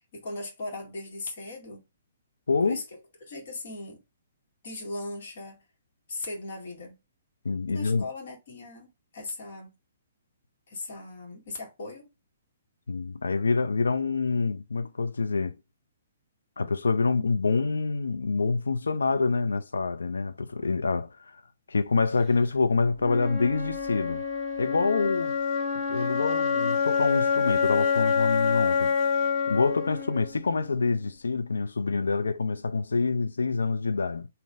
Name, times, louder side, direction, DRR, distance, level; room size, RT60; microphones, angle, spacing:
voice 1, 0.1-1.8 2.6-2.8 3.3-4.0 4.6-5.6 6.1-7.0 7.7-8.9 9.1-9.7 10.7-12.1, left 2 dB, 50° left, 1.9 m, -38 dB
voice 2, 7.4-8.1 12.9-15.6 16.6-21.1 21.7-24.2 24.6-25.3 25.9-28.9 29.5-34.3, left 4 dB, 70° left, 0.5 m, -26 dB
Wind instrument woodwind instrument, 23.0-31.0, left 6 dB, 25° left, 1.2 m, -27 dB
3.9 x 2.8 x 4.8 m
figure-of-eight pair, 125°, 0 cm